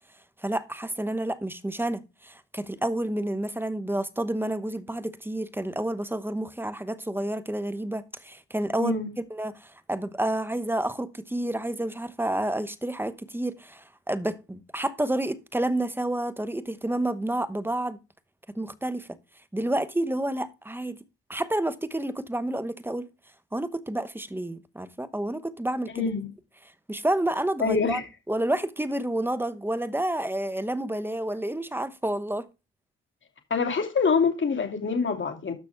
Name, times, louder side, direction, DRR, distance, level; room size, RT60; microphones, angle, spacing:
voice 1, 0.4-8.9 9.3-18.0 18.5-19.1 19.5-21.0 21.3-23.1 23.5-26.1 26.9-28.0 28.3-32.5, right 1 dB, 5° right, 0.9 m, -29 dB
voice 2, 8.8-9.1 25.9-26.3 27.6-28.1 33.5-35.5, left 5 dB, 40° left, 2.6 m, -25 dB
12.5 x 6.1 x 3.4 m
cardioid pair, 90°, 30 cm